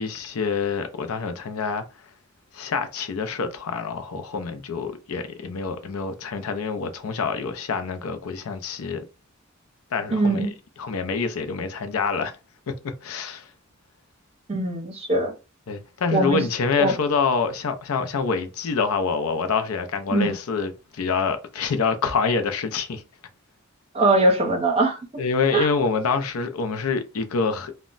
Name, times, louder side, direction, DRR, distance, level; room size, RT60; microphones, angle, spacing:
voice 1, 0.0-1.9 2.5-9.0 9.9-10.5 10.8-12.4 13.0-13.5 15.7-23.0 25.2-27.7, left 5 dB, 90° left, 0.5 m, -26 dB
voice 2, 10.1-10.5 14.5-15.3 16.1-16.4 16.8-16.9 20.1-20.3 23.9-25.0 25.5-25.7, right 2 dB, 30° right, 0.6 m, -21 dB
2.1 x 2.1 x 3.7 m
head